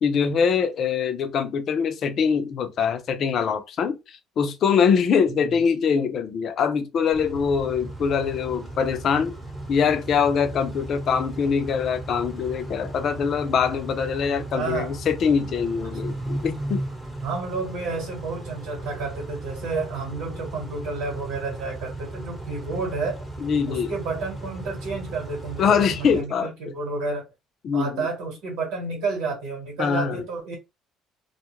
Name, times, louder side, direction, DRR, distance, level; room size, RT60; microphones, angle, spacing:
voice 1, 0.0-9.3 9.7-16.8 23.4-23.9 25.6-26.7 27.6-28.1 29.8-30.2, left 6 dB, 55° left, 0.5 m, -23 dB
Car / Idling / Accelerating revving vroom, 7.1-26.2, right 1 dB, 15° right, 0.9 m, -36 dB
voice 2, 14.5-14.9 17.2-23.2 23.7-27.3 27.7-30.5, right 3 dB, 80° right, 1.1 m, -31 dB
2.2 x 2.1 x 3.0 m
supercardioid pair, 95°, 0 cm